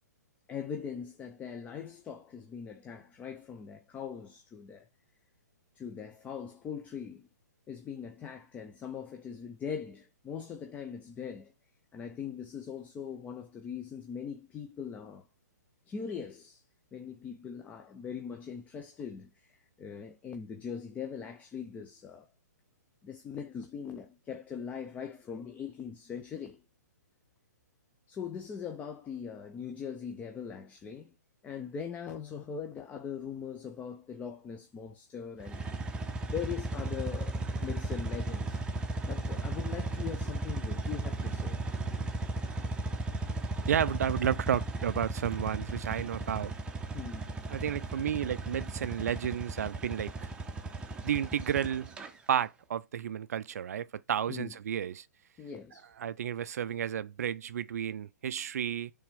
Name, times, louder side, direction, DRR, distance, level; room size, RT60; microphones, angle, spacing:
voice 1, 0.5-4.9 5.8-7.3 7.7-11.5 11.9-15.3 15.9-16.6 16.9-22.3 23.0-26.6 28.1-31.1 31.4-35.6 36.3-38.8 39.0-41.6 46.9-47.4 54.3-54.5 55.4-55.9, left 7 dB, 15° left, 0.6 m, -41 dB
sound 1, 35.4-52.1, right 2 dB, 10° right, 0.9 m, -35 dB
voice 2, 43.7-46.5 47.5-50.3 51.0-51.9 52.3-55.1 56.0-58.9, right 9 dB, 60° right, 0.4 m, -32 dB
7.1 x 3.5 x 5.2 m
figure-of-eight pair, 125°, 10 cm